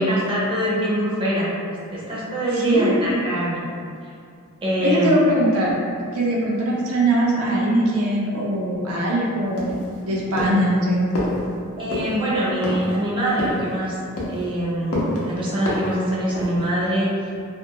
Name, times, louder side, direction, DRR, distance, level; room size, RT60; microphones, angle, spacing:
voice 1, 0.0-1.5 1.9-3.6 4.0-4.1 4.6-5.1 11.8-14.0 14.3-17.4, right 1 dB, 25° right, -7 dB, 0.5 m, -23 dB
voice 2, 2.6-3.2 4.8-5.7 6.1-9.7 10.1-11.1, right 1 dB, 80° right, -4 dB, 0.5 m, -21 dB
sound 1, 9.6-10.0 10.4-10.7 11.1-11.4 11.9-12.1 12.6-13.0 13.4-13.7 14.2-14.5 14.9-15.2 15.7-16.0 16.4-16.7, left 1 dB, 85° left, 0.6 m, -27 dB
2.4 x 2.1 x 2.7 m, 2.3 s
head